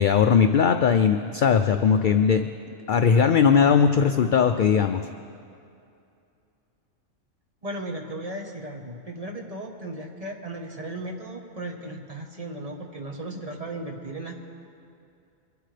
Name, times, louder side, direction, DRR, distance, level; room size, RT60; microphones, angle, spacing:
voice 1, 0.0-2.5 2.9-5.0, left 6 dB, 65° left, 7 dB, 0.5 m, -19 dB
voice 2, 7.6-14.4, right 1 dB, 30° right, 1 dB, 1.2 m, -36 dB
23.0 x 11.5 x 3.3 m, 2.5 s
omnidirectional pair, 1.3 m